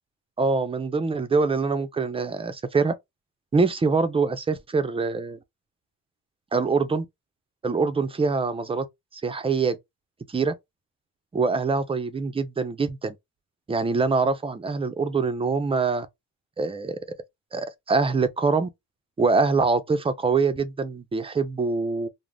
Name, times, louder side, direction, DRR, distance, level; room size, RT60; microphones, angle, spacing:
voice 1, 0.4-2.9 3.5-5.4 6.5-7.1 7.6-8.9 9.1-9.8 10.3-10.5 11.3-13.2 13.7-16.1 16.6-17.0 17.5-18.7 19.2-22.1, right 4 dB, 20° right, 0.4 m, -24 dB
2.4 x 2.0 x 3.2 m
cardioid pair, 90°, 30 cm